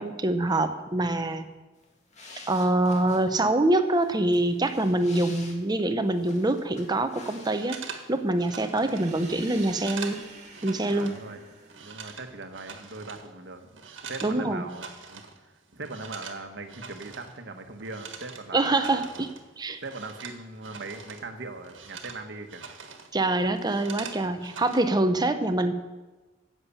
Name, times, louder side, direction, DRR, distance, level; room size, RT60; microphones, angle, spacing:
voice 1, 0.0-1.5 2.5-7.8 8.1-10.2 10.6-11.1 14.2-14.7 18.5-19.3 19.6-19.8 23.1-25.7, right 2 dB, 20° right, 8 dB, 0.8 m, -25 dB
sound 1, 1.8-8.0 8.2-8.7, left 3 dB, 40° left, 2.3 m, -49 dB
sound 2, 7.5-11.2 11.5-14.4 14.6-15.4 15.6-21.3 21.5-23.1 23.4-24.8, right 6 dB, 80° right, 1.5 m, -43 dB
sound 3, 8.8-12.5, right 4 dB, 40° right, 2.4 m, -47 dB
voice 2, 10.9-11.4 11.8-19.3 19.8-22.6, right 3 dB, 65° right, 6 dB, 1.3 m, -40 dB
11.0 x 7.5 x 8.4 m, 1.2 s
head